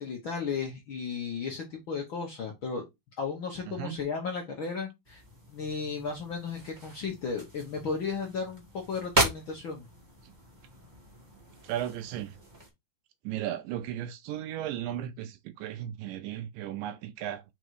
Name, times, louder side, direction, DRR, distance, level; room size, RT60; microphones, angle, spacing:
voice 1, 0.0-2.8 3.2-5.2 5.5-9.8, left 5 dB, 75° left, 1.1 m, -34 dB
voice 2, 3.7-4.0 10.2-10.3 11.6-12.4 13.2-17.4, right 11 dB, 80° right, 2.1 m, -35 dB
sound 1, 5.0-12.7, right 2 dB, 30° right, 0.8 m, -36 dB
5.3 x 3.9 x 4.7 m
omnidirectional pair, 4.0 m